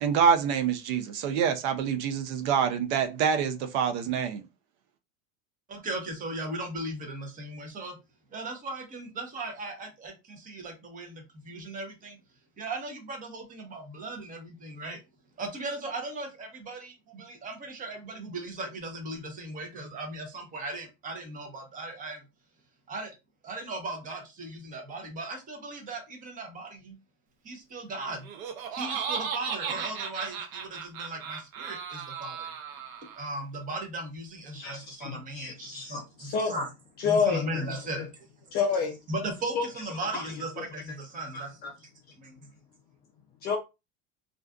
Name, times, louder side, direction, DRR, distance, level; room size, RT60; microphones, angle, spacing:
voice 1, 0.0-4.4, right 7 dB, 55° right, 0.5 m, -26 dB
voice 2, 5.7-8.0 8.3-12.2 12.6-15.0 15.4-22.2 22.9-23.1 23.4-27.0 27.4-28.3 28.7-32.5 33.2-36.6 37.0-38.2 39.1-41.9 42.2-42.4, right 2 dB, 20° right, 0.7 m, -37 dB
Laughter, 28.1-33.3, right 7 dB, 90° right, 0.8 m, -36 dB
voice 3, 34.5-36.7 37.0-37.7 38.5-39.0 39.6-39.7 40.1-40.3 41.3-41.7 43.4-43.6, left 5 dB, 25° left, 0.3 m, -29 dB
2.4 x 2.4 x 2.2 m
supercardioid pair, 140°, 40 cm